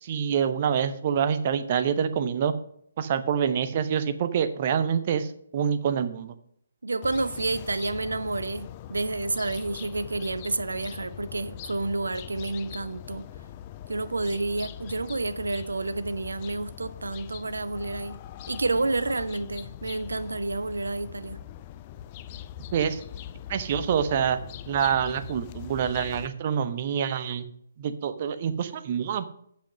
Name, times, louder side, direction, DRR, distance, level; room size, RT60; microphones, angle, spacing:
voice 1, 0.0-2.5 3.0-6.3 22.7-23.0 23.5-24.4 24.7-27.5 27.8-29.3, right 8 dB, 35° right, 0.8 m, -26 dB
voice 2, 6.8-13.3 13.9-18.2 18.5-21.4, right 2 dB, 65° right, 0.7 m, -30 dB
sound 1, 7.0-26.3, left 11 dB, 25° left, 0.4 m, -42 dB
7.7 x 6.9 x 5.3 m
figure-of-eight pair, 140°, 0 cm